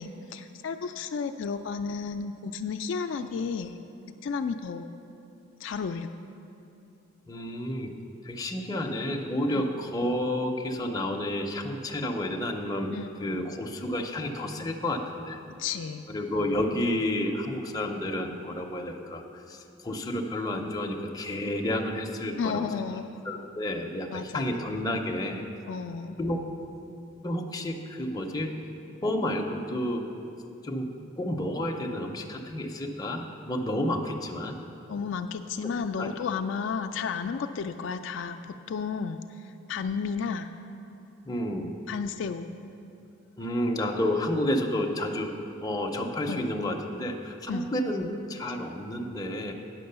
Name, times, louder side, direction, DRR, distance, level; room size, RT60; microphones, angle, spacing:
voice 1, 0.0-3.7 4.2-4.9 5.6-6.1 9.5-9.7 12.9-13.5 15.6-16.1 22.4-23.1 24.1-24.5 25.7-26.2 34.9-38.4 38.7-39.4 39.7-40.5 41.9-42.5 46.3-46.5 47.5-47.7, left 5 dB, 65° left, 7 dB, 0.3 m, -32 dB
voice 2, 7.3-7.9 8.2-15.4 16.1-22.7 23.3-25.4 26.2-26.4 27.2-28.5 29.0-30.1 30.6-34.6 36.0-36.1 41.2-41.7 43.4-49.5, left 1 dB, 20° left, 2 dB, 0.6 m, -30 dB
9.4 x 6.1 x 6.7 m, 2.8 s
head